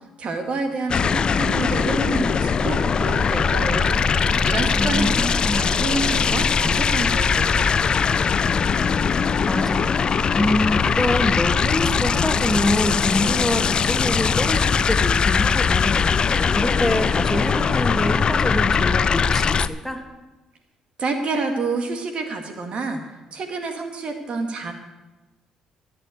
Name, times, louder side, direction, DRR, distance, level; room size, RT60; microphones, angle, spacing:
voice 1, 0.2-5.2 5.5-8.0 21.0-23.1 23.3-24.7, right 3 dB, 55° right, 5 dB, 2.0 m, -28 dB
sound 1, 0.9-19.7, left 6 dB, 45° left, 0.5 m, -21 dB
voice 2, 4.8-5.7 9.4-9.9 10.4-16.1 16.5-20.0, left 1 dB, 5° left, 3 dB, 2.3 m, -25 dB
14.5 x 7.9 x 7.8 m, 1.1 s
supercardioid pair, 60°, 2 cm